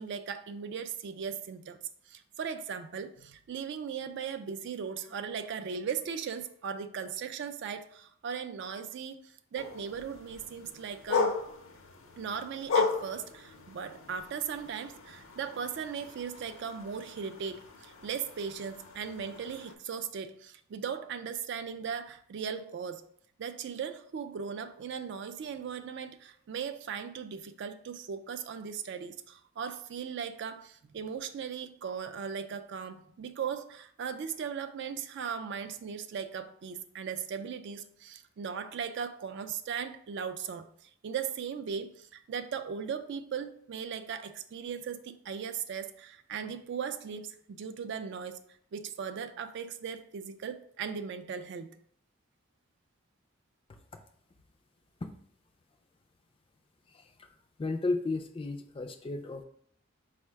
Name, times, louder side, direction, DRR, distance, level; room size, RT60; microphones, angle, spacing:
voice 1, 0.0-1.8 2.1-9.2 9.5-11.4 12.2-23.0 23.4-48.4 48.7-51.8, right 7 dB, 55° right, 0.3 m, -38 dB
sound 1, 9.5-19.7, left 4 dB, 70° left, 0.6 m, -36 dB
voice 2, 53.7-54.0 55.0-55.1 56.9-57.3 57.6-59.4, left 3 dB, 25° left, 0.3 m, -34 dB
4.4 x 2.1 x 4.5 m
head